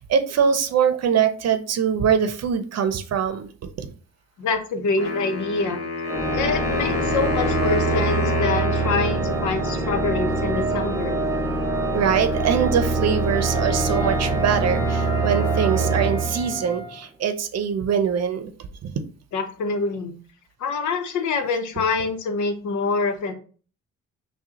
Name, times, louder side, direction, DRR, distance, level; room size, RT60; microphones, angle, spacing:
voice 1, 0.0-3.9 11.9-18.5 18.8-18.9, right 7 dB, 60° right, 8 dB, 0.7 m, -23 dB
voice 2, 4.4-5.8 6.3-11.2 19.3-20.1 20.6-23.3, left 4 dB, 75° left, 5 dB, 0.9 m, -25 dB
Wind instrument woodwind instrument, 5.0-10.0, left 4 dB, 45° left, 1.3 m, -29 dB
Organ, 6.0-17.0, right 3 dB, 10° right, 1.3 m, -24 dB
Wind instrument woodwind instrument 2, 13.3-17.1, left 3 dB, 15° left, 0.5 m, -34 dB
5.9 x 2.4 x 2.9 m, 0.39 s
cardioid pair, 90°, 30 cm